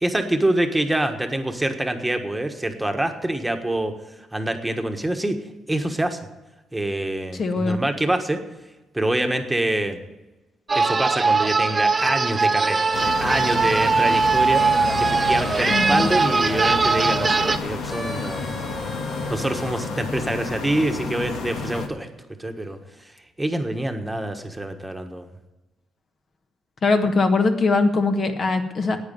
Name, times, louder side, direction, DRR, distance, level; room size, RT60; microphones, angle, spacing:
voice 1, 0.0-3.9 4.3-5.4 5.7-6.2 6.7-8.4 8.9-10.0 10.7-14.6 15.0-18.5 19.3-22.1 22.4-22.8 23.4-25.3, right 1 dB, 10° right, 5 dB, 1.4 m, -25 dB
voice 2, 7.3-7.8 15.7-16.1 26.8-29.0, left 3 dB, 45° left, 6 dB, 1.3 m, -21 dB
sound 1, 10.7-17.6, right 4 dB, 25° right, 0.8 m, -20 dB
sound 2, 12.4-13.3 14.2-16.6 17.8-20.0, equal, 5° left, 1.8 m, -37 dB
sound 3, 12.9-21.9, left 4 dB, 85° left, 1.6 m, -30 dB
9.6 x 9.0 x 9.2 m, 1.1 s
cardioid pair, 90°, 0 cm